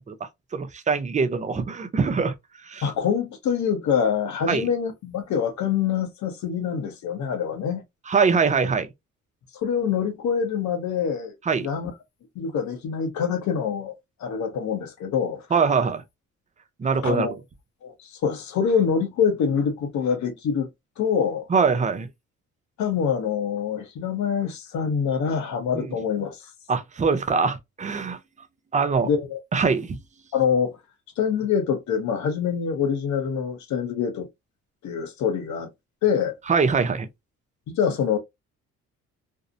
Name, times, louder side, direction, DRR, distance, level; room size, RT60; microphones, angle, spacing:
voice 1, 0.5-2.3 2.7-2.8 4.5-4.7 8.1-8.9 11.5-11.7 15.5-16.0 16.8-17.3 21.5-22.1 25.7-25.9 26.7-28.2 28.7-29.1 29.5-30.0 36.5-37.1, right 5 dB, 25° right, 0.4 m, -22 dB
voice 2, 2.8-7.8 9.5-11.9 12.4-13.9 14.2-15.5 17.0-17.4 17.8-20.7 21.0-21.5 22.8-26.5 29.0-29.4 30.3-30.8 31.2-34.3 34.8-35.7 36.0-36.4 37.7-38.2, left 7 dB, 70° left, 0.7 m, -25 dB
2.6 x 2.0 x 2.4 m
cardioid pair, 90°, 30 cm